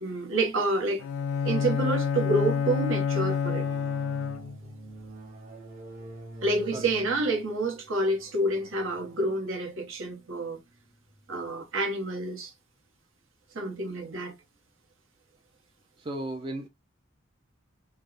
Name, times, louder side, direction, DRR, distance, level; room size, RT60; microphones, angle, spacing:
voice 1, 0.0-1.0 1.4-3.6 6.4-10.6 11.3-12.5 13.5-14.3, right 2 dB, 70° right, 0.9 m, -28 dB
Bowed string instrument, 1.0-4.7, left 6 dB, 80° left, 0.3 m, -28 dB
sound 1, 3.3-11.4, right 2 dB, 45° right, 0.9 m, -47 dB
voice 2, 16.0-16.7, right 1 dB, 25° right, 0.4 m, -35 dB
3.3 x 2.0 x 2.4 m
head